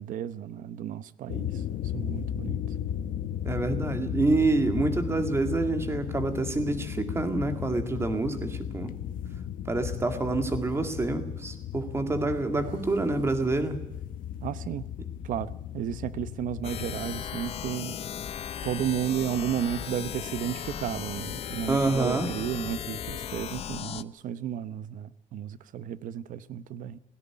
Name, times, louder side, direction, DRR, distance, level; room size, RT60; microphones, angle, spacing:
voice 1, 0.0-1.6 1.9-2.6 14.4-14.9 15.2-18.0 18.6-27.0, right 10 dB, 75° right, 0.9 m, -33 dB
sound 1, 1.3-17.2, left 10 dB, 85° left, 1.0 m, -35 dB
voice 2, 3.5-8.9 9.7-13.8 21.7-22.3, right 2 dB, 20° right, 2.0 m, -27 dB
sound 2, 16.6-24.0, left 9 dB, 45° left, 0.7 m, -36 dB
17.0 x 16.5 x 9.9 m
cardioid pair, 170°, 14 cm